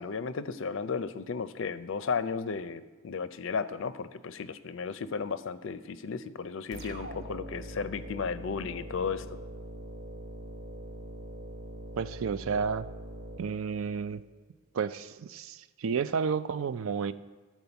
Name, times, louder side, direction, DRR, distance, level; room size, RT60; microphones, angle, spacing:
voice 1, 0.0-9.2, left 5 dB, 60° left, 13 dB, 0.5 m, -34 dB
sound 1, 6.7-14.2, right 1 dB, 50° right, 1.0 m, -43 dB
voice 2, 12.0-12.9 13.4-14.2 14.7-17.1, right 6 dB, 70° right, 14 dB, 0.4 m, -31 dB
13.5 x 4.6 x 6.9 m, 1.4 s
head